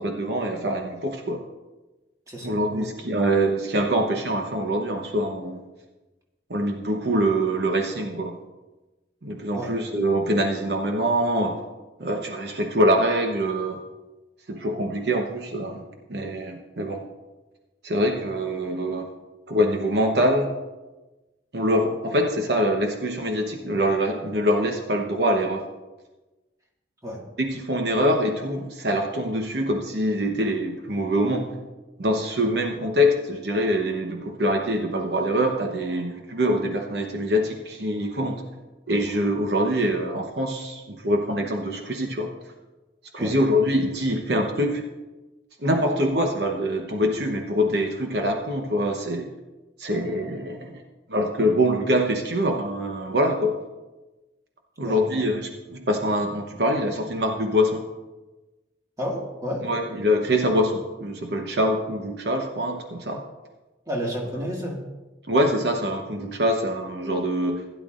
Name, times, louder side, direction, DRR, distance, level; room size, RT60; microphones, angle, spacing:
voice 1, 0.0-1.4 2.4-5.6 6.5-8.4 9.2-11.6 12.0-13.8 14.5-15.8 16.1-17.0 17.8-19.1 19.5-20.5 21.5-25.6 27.4-31.5 32.0-38.4 38.9-42.3 43.1-44.8 45.6-49.3 49.8-50.8 51.1-53.6 54.8-57.8 59.6-63.2 65.3-67.6, equal, 60° right, 3 dB, 0.9 m, -24 dB
voice 2, 2.3-2.9 9.5-9.7 27.0-27.2 43.2-43.4 54.8-55.3 59.0-59.7 63.9-64.8, equal, 20° right, -2 dB, 1.8 m, -31 dB
16.0 x 10.5 x 2.5 m, 1.1 s
head